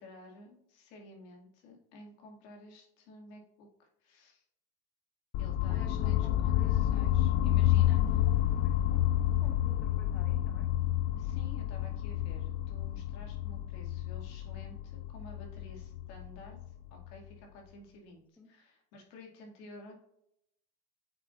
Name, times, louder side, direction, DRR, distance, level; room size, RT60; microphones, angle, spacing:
voice 1, 0.0-4.4 5.4-8.0 11.2-19.9, left 1 dB, 75° left, 0 dB, 2.3 m, -52 dB
sound 1, 5.3-17.3, left 13 dB, 60° left, 0.4 m, -29 dB
voice 2, 5.7-6.9 7.7-9.1 9.4-10.7 18.4-18.5, left 3 dB, 10° left, 2 dB, 1.3 m, -52 dB
8.7 x 4.7 x 2.5 m, 0.77 s
supercardioid pair, 120°, 17 cm